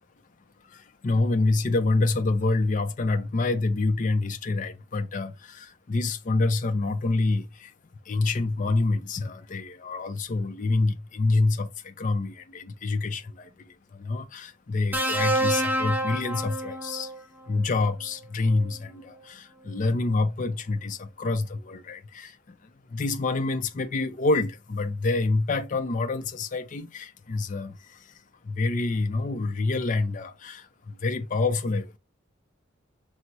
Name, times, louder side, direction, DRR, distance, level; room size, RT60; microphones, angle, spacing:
voice 1, 0.6-7.7 8.1-17.1 17.5-32.0, left 3 dB, 40° left, 0.4 m, -27 dB
sound 1, 14.9-17.2 18.5-18.7, right 1 dB, 10° right, 0.5 m, -27 dB
5.9 x 2.0 x 3.9 m
head